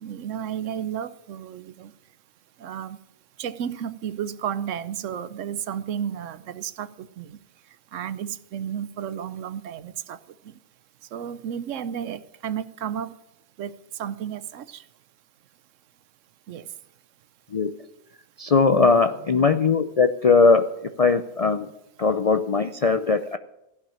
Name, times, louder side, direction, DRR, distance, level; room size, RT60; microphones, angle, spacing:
voice 1, 0.0-1.9 2.6-3.0 3.4-7.4 7.9-10.2 11.1-13.1 13.6-13.7 14.0-14.8 16.5-16.7 18.7-18.9, right 9 dB, 75° right, 1.0 m, -32 dB
voice 2, 18.4-20.7 21.0-21.7 22.0-23.4, left 4 dB, 55° left, 0.4 m, -19 dB
15.0 x 5.9 x 10.0 m
omnidirectional pair, 1.3 m